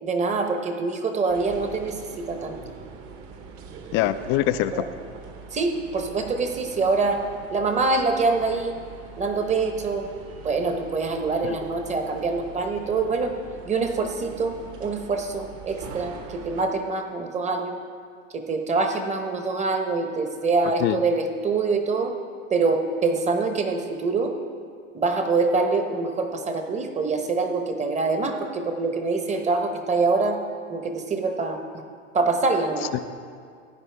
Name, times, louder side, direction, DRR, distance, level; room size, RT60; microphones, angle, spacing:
voice 1, 0.0-2.6 4.7-4.9 5.5-7.2 7.5-8.8 9.2-10.1 10.4-13.3 13.7-14.5 14.8-17.8 18.3-22.1 22.5-24.3 24.9-30.4 30.7-31.6 32.1-32.9, right 3 dB, 20° right, 5 dB, 1.0 m, -25 dB
sound 1, 1.3-16.7, right 5 dB, 40° right, 1.3 m, -42 dB
voice 2, 3.9-4.8 11.4-11.6 20.8-21.0 32.9-33.0, left 13 dB, 35° left, 13 dB, 0.4 m, -23 dB
15.5 x 9.7 x 3.4 m, 2.1 s
hypercardioid pair, 115°, 37 cm